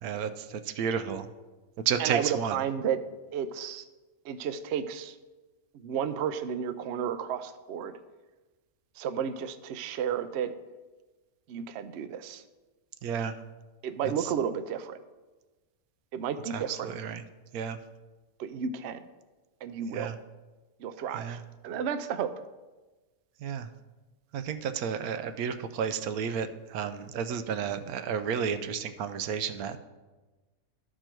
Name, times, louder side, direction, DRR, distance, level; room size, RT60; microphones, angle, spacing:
voice 1, 0.0-1.3 1.9-2.5 13.0-13.3 16.5-17.2 17.5-17.8 19.9-20.1 21.1-21.4 23.4-23.7 24.3-29.8, right 7 dB, 85° right, 10 dB, 1.1 m, -32 dB
voice 2, 2.0-3.0 3.3-3.8 4.2-5.2 5.7-8.0 9.0-10.5 11.5-12.4 13.8-15.0 16.1-16.9 18.4-19.0 19.6-20.1 20.8-22.3, right 8 dB, 65° right, 11 dB, 0.7 m, -32 dB
12.5 x 4.5 x 4.5 m, 1.2 s
omnidirectional pair, 1.5 m